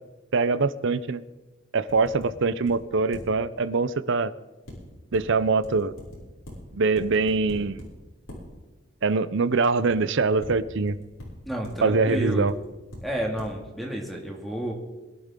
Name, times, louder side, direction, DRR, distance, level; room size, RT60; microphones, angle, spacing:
voice 1, 0.3-1.2 1.7-4.3 5.1-5.9 6.7-7.8 9.0-11.0 11.8-12.5, right 4 dB, 60° right, 16 dB, 0.6 m, -23 dB
sound 1, 1.9-2.3 2.7-2.8 3.1-3.2 4.7-5.2 5.6-6.2 6.4-6.5 6.9-7.8 8.3-8.4 9.9-10.0 10.4-10.5 10.9-11.2 11.6-11.7 12.1-13.0 13.4-13.5, equal, 70° left, 6.0 m, -42 dB
voice 2, 11.4-12.5 13.0-14.7, right 1 dB, ahead, -1 dB, 2.2 m, -31 dB
22.5 x 11.5 x 3.8 m, 1.2 s
head